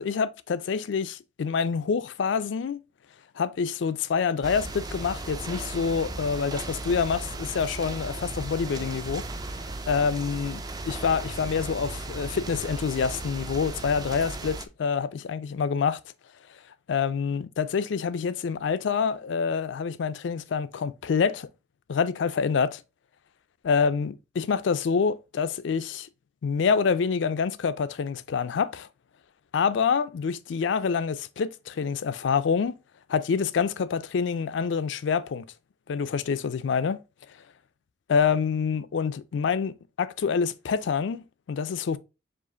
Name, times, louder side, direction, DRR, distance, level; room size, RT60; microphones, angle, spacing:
voice 1, 0.0-2.8 3.4-9.2 9.9-16.0 16.9-21.5 21.9-22.8 23.6-26.1 26.4-28.9 29.5-32.8 33.1-35.5 35.9-37.0 38.1-42.0, left 6 dB, 70° left, 0.4 m, -27 dB
sound 1, 4.4-14.7, right 2 dB, 20° right, 0.3 m, -36 dB
4.9 x 2.4 x 3.7 m
head